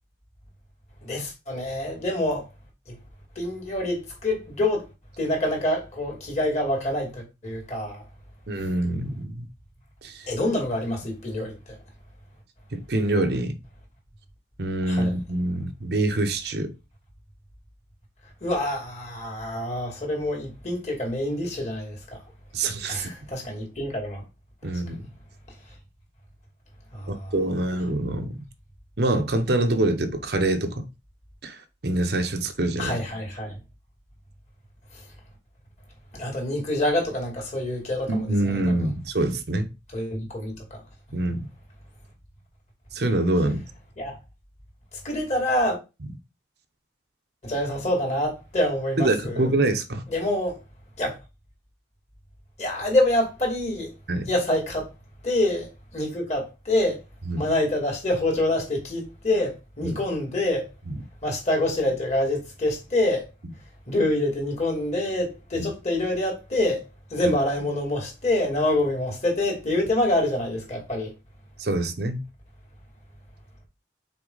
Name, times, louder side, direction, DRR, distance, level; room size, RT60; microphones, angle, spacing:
voice 1, 1.0-2.5 2.9-3.0 3.4-4.8 5.2-8.0 10.3-11.8 14.9-15.1 18.4-22.2 22.9-24.2 24.9-25.0 26.9-27.3 32.8-33.6 34.9-35.0 36.1-38.9 39.9-40.8 44.0-44.1 45.0-45.8 47.4-49.5 50.1-50.6 51.0-51.2 52.6-53.9 54.3-54.9 55.2-57.0 57.4-60.7 61.2-63.3 63.9-66.8 67.1-71.1, left 1 dB, 40° left, 2.6 m, -26 dB
voice 2, 8.5-9.5 10.0-10.3 12.7-13.5 14.6-16.7 22.5-23.1 24.6-25.0 27.1-28.3 29.0-30.8 31.4-33.0 38.1-39.7 41.1-41.5 42.9-43.6 49.0-50.0 54.1-54.3 57.3-57.4 59.8-60.0 60.9-61.0 65.6-65.7 67.2-67.3 71.6-72.2, right 2 dB, 60° right, 0.8 m, -25 dB
6.0 x 4.4 x 3.9 m
head